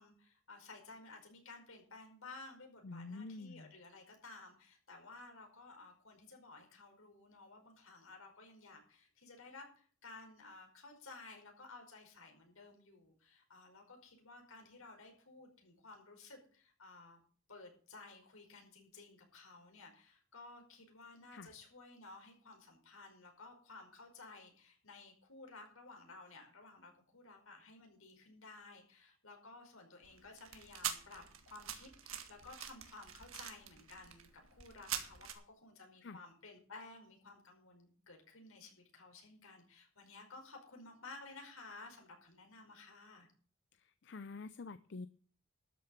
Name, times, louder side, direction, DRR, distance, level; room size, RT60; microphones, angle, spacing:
voice 1, 0.0-17.2 17.5-43.3, left 3 dB, 75° left, 3 dB, 5.0 m, -55 dB
voice 2, 2.8-3.7 21.3-21.5 36.0-36.2 44.0-45.1, left 3 dB, 50° left, 14 dB, 0.5 m, -47 dB
sound 1, 30.0-35.3, right 9 dB, 70° right, 1.9 m, -45 dB
13.0 x 6.7 x 8.2 m, 0.44 s
head